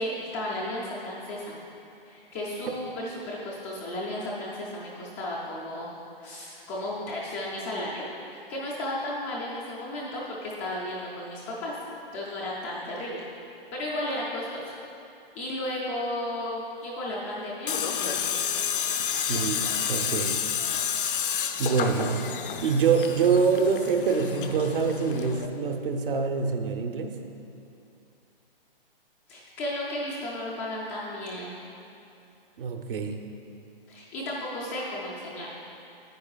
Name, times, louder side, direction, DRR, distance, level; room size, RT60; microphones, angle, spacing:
voice 1, 0.0-1.6 2.0-5.9 6.2-11.8 12.1-14.7 15.3-18.3 29.3-31.6 33.9-35.5, left 1 dB, 10° left, -5 dB, 0.4 m, -34 dB
Tools, 17.7-25.5, left 8 dB, 60° left, 0.6 m, -30 dB
voice 2, 19.3-20.4 21.6-22.2 22.6-27.2 32.6-33.2, right 5 dB, 65° right, 4 dB, 0.8 m, -25 dB
9.6 x 9.4 x 2.3 m, 2.7 s
hypercardioid pair, 150°, 30 cm